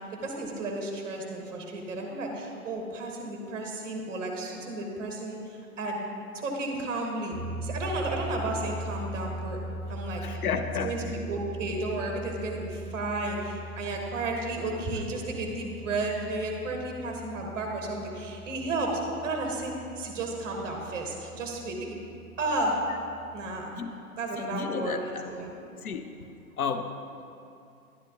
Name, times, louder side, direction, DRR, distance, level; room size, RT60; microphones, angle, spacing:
voice 1, 0.2-5.4 5.8-6.0 6.3-7.4 7.6-9.6 9.9-10.4 10.8-21.8 22.4-22.8 23.3-23.8 24.2-25.5, right 2 dB, 10° right, 1 dB, 0.8 m, -33 dB
sound 1, 7.3-23.7, right 1 dB, 5° left, 0.4 m, -40 dB
voice 2, 10.2-11.1 23.8-23.9 24.4-25.2 25.8-26.3 26.6-27.0, left 6 dB, 70° left, 8 dB, 0.7 m, -32 dB
11.0 x 10.5 x 2.9 m, 2.5 s
figure-of-eight pair, 120°, 45 cm